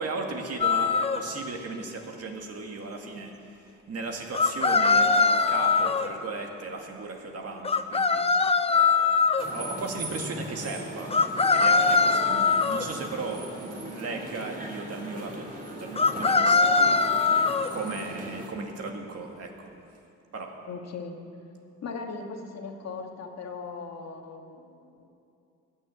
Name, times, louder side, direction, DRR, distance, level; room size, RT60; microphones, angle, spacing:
voice 1, 0.0-8.2 8.7-11.2 11.5-15.5 15.8-19.5 20.3-20.5, right 3 dB, 55° right, 2 dB, 2.2 m, -36 dB
sound 1, 0.6-1.2 4.3-6.1 7.6-9.5 11.1-12.8 16.0-17.7, left 4 dB, 20° left, 0.7 m, -22 dB
sound 2, 9.4-18.5, right 1 dB, 30° right, 3.4 m, -39 dB
voice 2, 20.7-21.2 21.8-25.1, left 4 dB, 60° left, 3 dB, 1.7 m, -38 dB
19.0 x 7.0 x 8.3 m, 2.6 s
cardioid pair, 90°, 30 cm